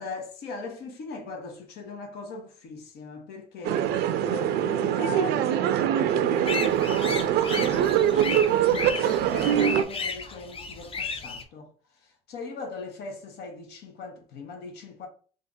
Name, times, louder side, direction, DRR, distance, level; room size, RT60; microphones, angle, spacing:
voice 1, 0.0-15.1, left 3 dB, 75° left, 1.0 m, -40 dB
sound 1, 3.6-9.8, right 10 dB, 75° right, 0.4 m, -23 dB
sound 2, 6.5-11.4, left 4 dB, 35° left, 0.6 m, -34 dB
2.8 x 2.5 x 3.7 m
cardioid pair, 110°, 17 cm